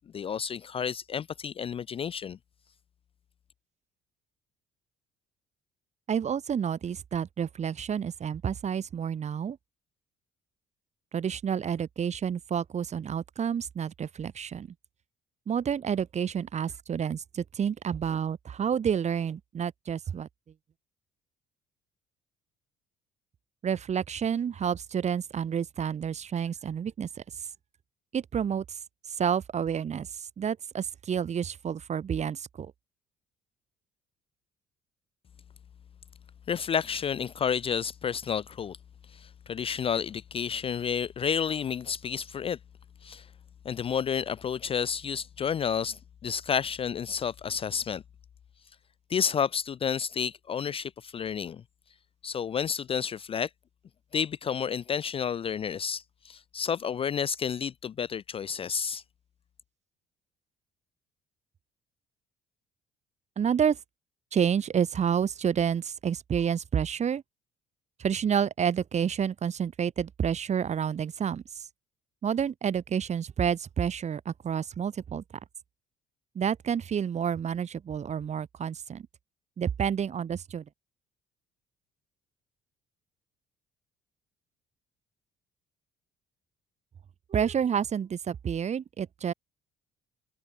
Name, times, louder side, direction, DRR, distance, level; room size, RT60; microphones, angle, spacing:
voice 1, 0.1-2.4 36.5-38.8 39.1-42.6 43.0-43.3 43.6-48.0 49.1-51.6 52.2-53.5 54.1-59.0, left 7 dB, 35° left, 0.4 m, -30 dB
voice 2, 6.1-9.6 11.1-14.7 15.5-20.3 23.6-27.2 28.1-28.8 29.2-30.1 30.4-32.7 63.4-63.8 64.3-67.2 68.0-71.7 72.2-75.2 76.3-79.1 79.6-80.6 87.3-89.3, right 8 dB, 40° right, 2.5 m, -29 dB
cardioid pair, 110°, 17 cm